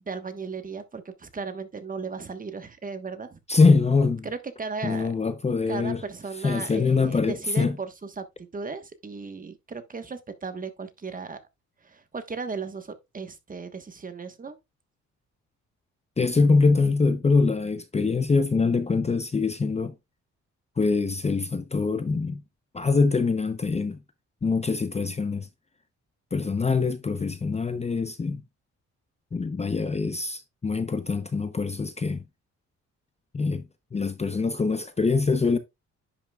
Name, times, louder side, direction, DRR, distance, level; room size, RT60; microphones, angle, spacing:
voice 1, 0.0-3.4 4.2-5.1 5.7-8.2 8.5-11.4 11.8-14.6, right 4 dB, 30° right, 1.2 m, -36 dB
voice 2, 3.5-4.3 4.8-6.0 6.4-7.8 16.2-19.9 20.8-22.4 22.7-24.0 24.4-25.5 26.3-28.4 29.3-32.2 33.3-33.7 33.9-35.6, left 4 dB, 20° left, 0.7 m, -24 dB
10.5 x 5.8 x 2.3 m
cardioid pair, 90°, 30 cm